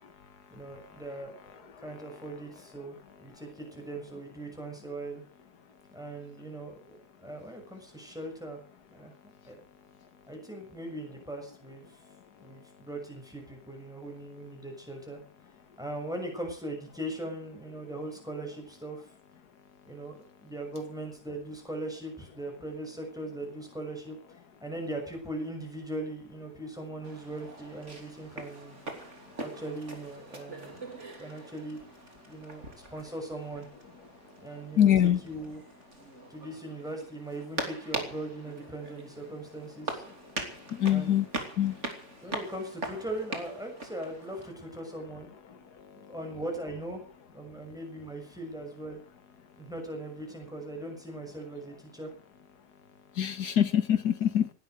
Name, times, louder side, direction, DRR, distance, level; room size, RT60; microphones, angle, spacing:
voice 1, 0.5-5.2 5.9-8.6 8.9-9.6 10.3-12.0 12.4-15.2 15.8-19.1 19.9-24.2 24.6-28.8 29.4-30.9 31.2-31.8 32.3-33.7 34.4-35.6 36.3-40.0 40.9-41.2 42.2-45.3 46.1-47.0 47.3-49.0 49.6-52.1, right 1 dB, ahead, 2 dB, 6.5 m, -40 dB
sound 1, 27.0-44.5, right 2 dB, 45° right, 3.5 m, -42 dB
voice 2, 34.8-35.2 40.7-41.3 41.6-41.8 53.2-54.5, left 10 dB, 85° left, 10 dB, 2.0 m, -24 dB
18.5 x 12.0 x 6.6 m, 0.41 s
omnidirectional pair, 1.7 m